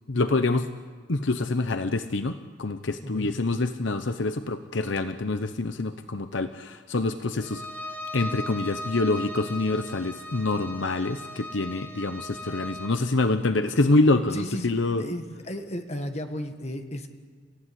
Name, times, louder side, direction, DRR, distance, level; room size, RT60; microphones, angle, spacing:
voice 1, 0.1-0.7 1.1-7.6 8.1-15.0, left 2 dB, 70° left, 9 dB, 0.9 m, -26 dB
Bowed string instrument, 7.4-13.0, left 1 dB, 10° left, 2.4 m, -38 dB
voice 2, 14.1-17.1, left 1 dB, 35° left, 5 dB, 1.8 m, -34 dB
30.0 x 15.5 x 10.0 m, 1.5 s
head